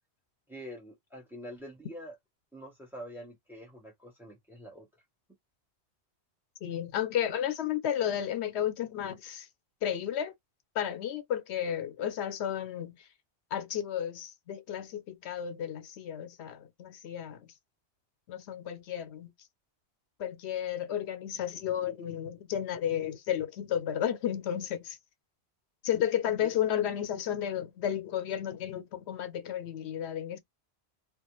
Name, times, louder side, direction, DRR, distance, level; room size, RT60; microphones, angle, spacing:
voice 1, 0.5-2.1 2.5-4.9 26.4-26.5, equal, ahead, 0.7 m, -45 dB
voice 2, 6.6-9.5 9.8-10.3 10.7-13.1 13.5-17.5 18.3-19.3 20.2-25.0 25.8-30.4, left 10 dB, 80° left, 0.9 m, -33 dB
2.3 x 2.1 x 3.0 m
omnidirectional pair, 1.1 m